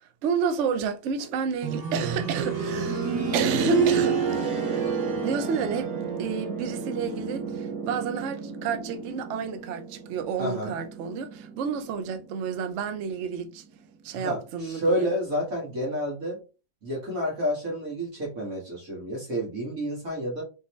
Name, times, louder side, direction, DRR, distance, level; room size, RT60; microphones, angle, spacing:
voice 1, 0.0-4.8 5.2-13.6 14.0-15.1, right 6 dB, 80° right, 0.6 m, -31 dB
sound 1, 1.6-12.4 12.7-12.8 13.7-13.8, right 5 dB, 65° right, 1.8 m, -29 dB
voice 2, 10.4-10.8 14.1-16.4 16.8-20.4, equal, 50° right, 1.9 m, -29 dB
3.7 x 3.7 x 3.0 m
omnidirectional pair, 2.0 m